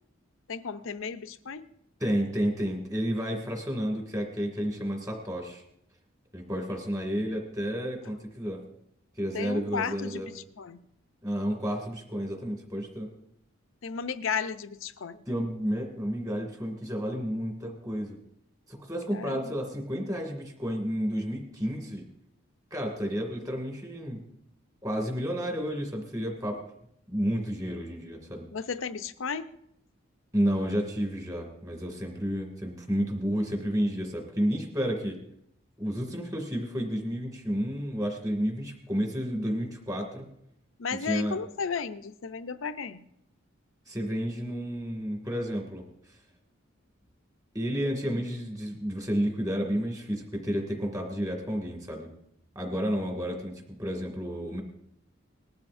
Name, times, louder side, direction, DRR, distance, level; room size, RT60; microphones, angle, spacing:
voice 1, 0.5-1.7 9.3-10.9 13.8-15.2 19.1-19.5 28.5-29.5 40.8-43.1, left 6 dB, 75° left, 10 dB, 0.6 m, -34 dB
voice 2, 2.0-5.6 6.3-8.6 9.2-10.3 11.2-13.1 15.3-18.2 18.7-22.0 22.7-24.2 24.8-26.6 27.1-28.5 30.3-35.2 35.8-40.2 40.9-41.4 43.9-45.8 47.5-52.1 52.6-54.6, equal, 20° right, 1 dB, 2.3 m, -31 dB
19.5 x 12.0 x 2.6 m, 0.75 s
head